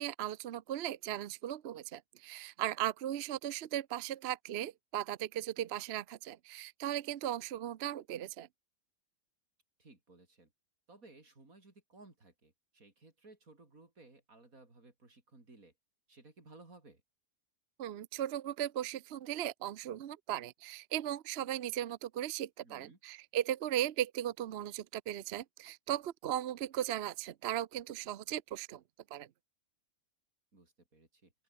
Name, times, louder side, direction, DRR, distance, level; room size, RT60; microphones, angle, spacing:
voice 1, 0.0-8.5 17.8-28.8 29.1-29.3, right 11 dB, 60° right, 0.8 m, -37 dB
voice 2, 9.8-10.5 10.9-15.7 16.1-17.0 22.6-23.0 30.5-31.3, right 2 dB, 90° right, 5.1 m, -58 dB
open air
omnidirectional pair, 1.4 m